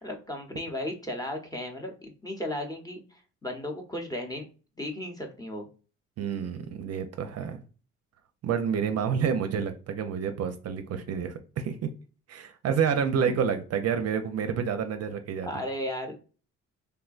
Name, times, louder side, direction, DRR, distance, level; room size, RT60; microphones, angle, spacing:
voice 1, 0.0-4.5 4.8-5.7 13.2-13.4 15.4-16.1, left 1 dB, 10° left, 3 dB, 0.8 m, -35 dB
voice 2, 6.2-7.6 8.4-11.8 12.3-15.5, right 7 dB, 55° right, 8 dB, 0.5 m, -29 dB
3.4 x 2.1 x 2.3 m, 0.37 s
cardioid pair, 90°, 30 cm